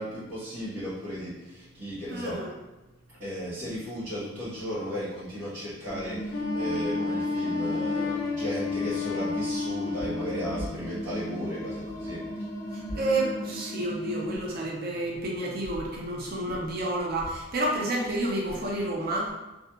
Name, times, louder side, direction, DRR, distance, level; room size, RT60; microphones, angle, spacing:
voice 1, 0.0-2.4 3.1-13.0, equal, 70° right, -14 dB, 1.4 m, -35 dB
voice 2, 2.1-2.5 12.9-19.3, right 1 dB, 50° right, -3 dB, 0.5 m, -30 dB
sound 1, 5.9-14.4, equal, 25° left, 0.8 m, -37 dB
Wind instrument woodwind instrument, 6.3-10.6, left 4 dB, 75° left, 0.3 m, -30 dB
2.7 x 2.3 x 2.3 m, 1.1 s
head